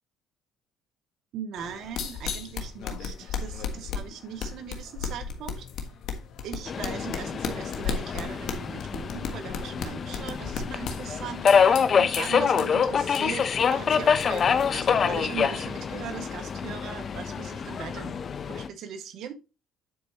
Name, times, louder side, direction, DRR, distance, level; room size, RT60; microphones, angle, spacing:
voice 1, 1.3-5.9 6.4-18.2 18.5-19.3, right 8 dB, 65° right, 6 dB, 1.6 m, -39 dB
sound 1, 1.6-15.3, left 6 dB, 65° left, 1.5 m, -36 dB
Subway metro underground, 6.7-18.7, left 6 dB, 45° left, 0.7 m, -26 dB
10.5 x 4.7 x 2.9 m, 0.28 s
supercardioid pair, 75°, 0 cm